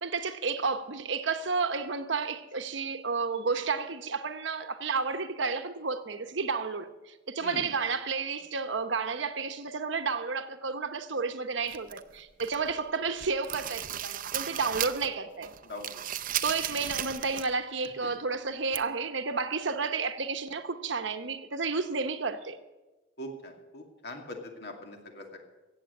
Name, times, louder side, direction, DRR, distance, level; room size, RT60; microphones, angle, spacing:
voice 1, 0.0-15.5 16.4-22.6, right 4 dB, 70° right, 1.0 m, -31 dB
sound 1, 11.7-12.7 13.1-15.1 15.4-17.6 17.8-17.9 18.7-18.8, right 11 dB, 45° right, 0.6 m, -35 dB
voice 2, 15.6-16.0 18.0-18.1 23.2-25.4, left 1 dB, 60° left, 2.4 m, -42 dB
16.0 x 7.6 x 8.7 m
head